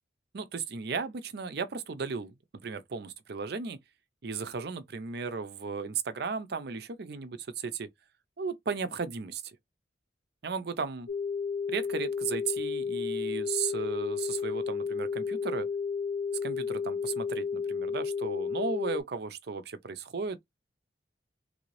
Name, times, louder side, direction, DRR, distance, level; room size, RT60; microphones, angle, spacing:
voice 1, 0.3-2.3 2.6-3.8 4.2-7.9 8.4-9.6 10.4-11.1 11.7-15.7 16.4-20.4, right 5 dB, 60° right, 0.5 m, -35 dB
sound 1, 11.1-19.0, left 5 dB, 60° left, 0.5 m, -32 dB
3.3 x 2.6 x 3.2 m
head